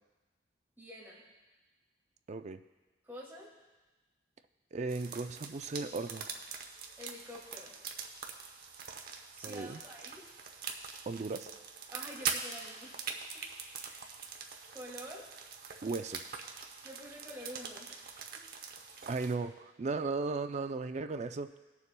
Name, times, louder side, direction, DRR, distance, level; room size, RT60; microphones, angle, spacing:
voice 1, 0.8-1.2 3.0-3.5 7.0-7.8 9.3-10.3 11.9-13.0 13.8-14.0 14.7-15.3 16.8-18.1 18.3-18.4, equal, 10° right, -5 dB, 2.2 m, -48 dB
voice 2, 2.3-2.6 4.7-6.3 9.4-9.8 11.1-11.5 15.8-16.2 19.1-21.5, right 3 dB, 40° right, 9 dB, 0.4 m, -36 dB
sound 1, 4.9-19.3, right 6 dB, 55° right, 0.8 m, -43 dB
21.0 x 7.0 x 2.2 m, 1.2 s
head